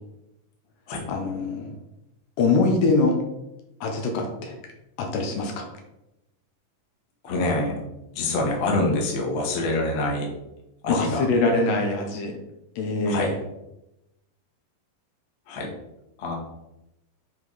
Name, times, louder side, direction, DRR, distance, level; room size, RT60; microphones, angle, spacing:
voice 1, 1.1-1.7 2.4-3.2 3.8-4.5 5.0-5.7 10.9-12.4 12.8-13.3, left 3 dB, 75° left, 2 dB, 2.5 m, -23 dB
voice 2, 7.2-7.8 8.1-10.3 10.8-11.2 13.0-13.3 15.5-15.7 16.2-16.3, left 2 dB, 50° left, -1 dB, 1.5 m, -26 dB
7.2 x 3.7 x 4.8 m, 0.90 s
omnidirectional pair, 4.1 m